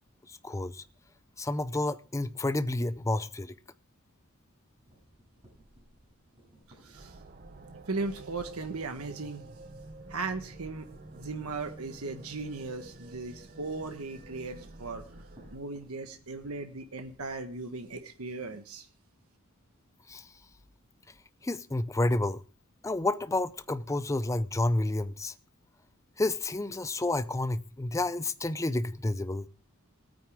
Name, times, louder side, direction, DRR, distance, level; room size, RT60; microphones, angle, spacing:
voice 1, 0.3-0.8 1.4-3.5 20.1-20.2 21.4-22.4 22.8-25.3 26.2-29.5, left 2 dB, 15° left, 0.5 m, -30 dB
sound 1, 4.8-10.2 10.5-18.0, right 1 dB, 25° right, 7.7 m, -61 dB
voice 2, 6.8-7.2 7.9-9.5 10.1-10.9 11.1-15.0 15.5-18.9, right 3 dB, 85° right, 1.3 m, -37 dB
sound 2, 6.9-15.6, right 2 dB, 45° right, 0.9 m, -49 dB
20.0 x 9.3 x 3.6 m
head